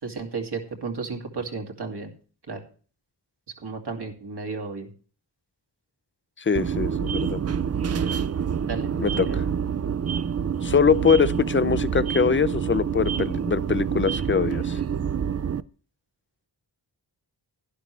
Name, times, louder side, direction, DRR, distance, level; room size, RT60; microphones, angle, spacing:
voice 1, 0.0-2.1 2.5-2.6 3.6-4.9 8.7-9.4, right 4 dB, 70° right, 2 dB, 2.5 m, -33 dB
voice 2, 6.4-7.4 9.0-9.4 10.6-14.8, left 6 dB, 30° left, 17 dB, 0.5 m, -23 dB
sound 1, 6.6-15.6, right 7 dB, 40° right, 0.4 m, -27 dB
11.5 x 11.0 x 3.3 m, 0.39 s
wide cardioid pair, 105°, 42 cm